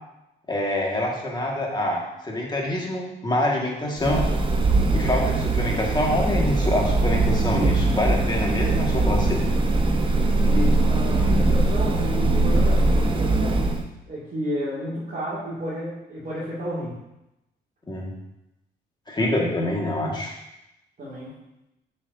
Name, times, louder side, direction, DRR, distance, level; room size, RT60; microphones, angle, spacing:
voice 1, 0.5-4.3 4.9-9.4 17.9-18.1 19.1-20.3, left 1 dB, 20° left, -1 dB, 1.7 m, -26 dB
sound 1, 4.0-13.8, right 2 dB, 25° right, 0.8 m, -21 dB
voice 2, 10.5-13.6 14.1-17.0 21.0-21.3, equal, 45° right, -10 dB, 2.3 m, -31 dB
7.6 x 6.3 x 2.7 m, 0.91 s
cardioid pair, 90°, 20 cm